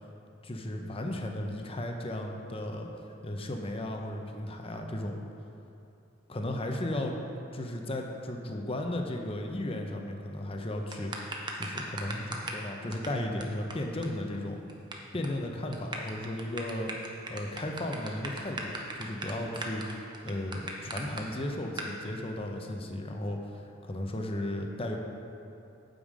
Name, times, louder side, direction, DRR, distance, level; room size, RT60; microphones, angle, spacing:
voice 1, 0.4-2.9 3.2-5.2 6.3-7.2 7.5-14.6 15.1-16.9 17.3-20.0 20.2-25.0, left 1 dB, 30° left, 2 dB, 0.8 m, -35 dB
sound 1, 10.9-12.6 12.9-13.1 13.4-13.5 13.7-13.8 14.0-14.1 14.3-14.9 15.2-15.4 15.7-21.2 21.8-21.9, right 2 dB, 25° right, 0.8 m, -37 dB
9.0 x 7.0 x 4.9 m, 2.7 s
head